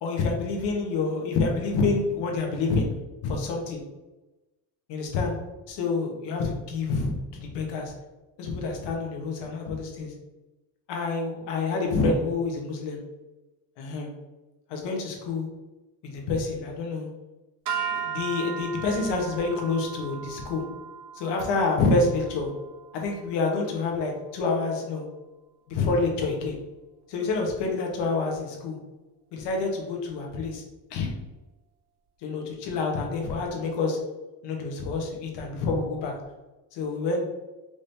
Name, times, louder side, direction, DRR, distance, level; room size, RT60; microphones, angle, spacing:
voice 1, 0.0-2.9 3.2-3.8 4.9-5.4 5.7-7.9 8.4-10.1 10.9-13.0 13.8-14.1 14.7-15.5 16.0-17.1 17.7-20.6 21.1-22.5 22.9-25.1 25.7-26.6 27.1-28.8 29.3-30.6 30.9-31.1 32.2-34.0 34.4-36.1 36.7-37.3, left 3 dB, 85° left, 1 dB, 1.2 m, -27 dB
sound 1, 17.7-24.0, right 7 dB, 70° right, 0.9 m, -37 dB
4.9 x 3.5 x 2.7 m, 1.1 s
cardioid pair, 120°, 41 cm